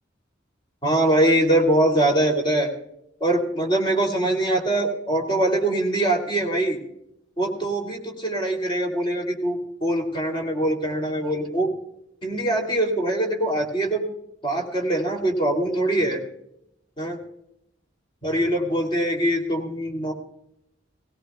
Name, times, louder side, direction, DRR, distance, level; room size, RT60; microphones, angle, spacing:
voice 1, 0.8-2.7 3.2-6.8 7.4-11.7 12.2-14.0 14.4-16.2 17.0-17.2 18.2-20.1, right 1 dB, 25° left, 1 dB, 2.8 m, -23 dB
20.0 x 17.5 x 2.3 m, 0.78 s
head